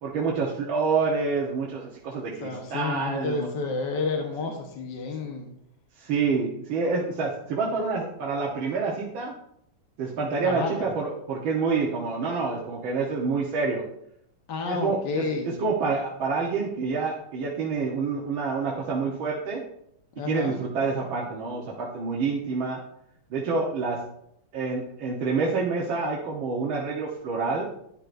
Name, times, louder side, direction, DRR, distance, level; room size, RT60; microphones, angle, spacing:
voice 1, 0.0-3.5 6.0-9.3 10.0-13.8 14.7-19.6 20.2-22.8 23.3-24.0 24.5-27.6, right 4 dB, 65° right, -3 dB, 2.0 m, -27 dB
voice 2, 2.4-5.5 10.4-10.9 14.5-15.6 20.2-20.6, left 3 dB, 55° left, 2 dB, 1.7 m, -30 dB
12.5 x 9.9 x 2.6 m, 0.74 s
omnidirectional pair, 2.4 m